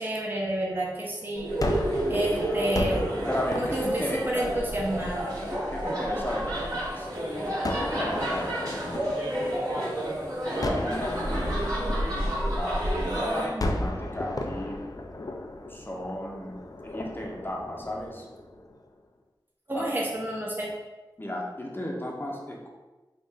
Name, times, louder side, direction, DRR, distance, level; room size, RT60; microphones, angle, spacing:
voice 1, 0.0-1.5 2.1-3.0 3.6-5.3 19.7-20.7, right 1 dB, 25° right, -4 dB, 0.8 m, -29 dB
sound 1, 1.3-13.5, right 1 dB, 45° right, 1.5 m, -30 dB
Gunshot gunfire, 1.6-6.7 7.6-10.1 10.6-13.1 13.6-18.8, left 1 dB, 45° left, 0.4 m, -35 dB
voice 2, 3.3-4.5 5.7-7.1 7.3-9.3 10.4-11.6 12.4-14.8 15.7-16.6 16.8-18.3 19.7-19.9 21.2-22.7, equal, 25° left, -1 dB, 0.7 m, -35 dB
3.7 x 2.4 x 4.1 m, 1.1 s
wide cardioid pair, 70°, 8 cm